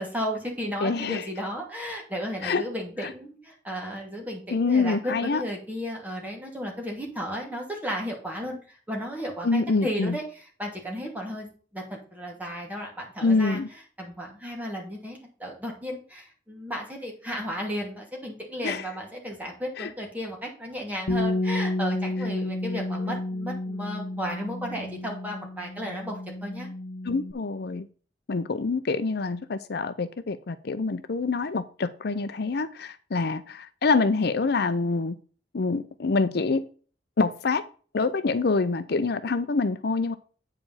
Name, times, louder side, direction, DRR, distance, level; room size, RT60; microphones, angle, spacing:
voice 1, 0.0-11.5 11.7-13.6 14.0-26.7, equal, 10° right, -1 dB, 2.7 m, -34 dB
voice 2, 0.8-1.3 2.4-2.6 3.0-3.1 4.5-5.4 9.4-10.2 13.2-13.7 18.6-18.9 19.8-19.9 27.0-27.9 28.3-35.1 35.5-36.7 37.2-37.6 37.9-40.2, left 4 dB, 60° left, 12 dB, 0.6 m, -26 dB
Bass guitar, 21.1-27.3, left 1 dB, 85° left, 0.9 m, -31 dB
8.7 x 5.1 x 5.6 m, 0.39 s
head